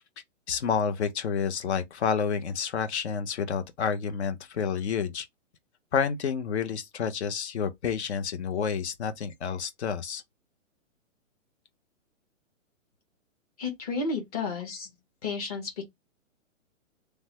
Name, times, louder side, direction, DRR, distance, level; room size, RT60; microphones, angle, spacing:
voice 1, 0.5-5.3 5.9-10.2, left 6 dB, 55° left, 0.7 m, -29 dB
voice 2, 13.6-14.9 15.2-15.8, left 4 dB, 30° left, 1.1 m, -32 dB
3.2 x 2.1 x 2.9 m
hypercardioid pair, 165°, 40 cm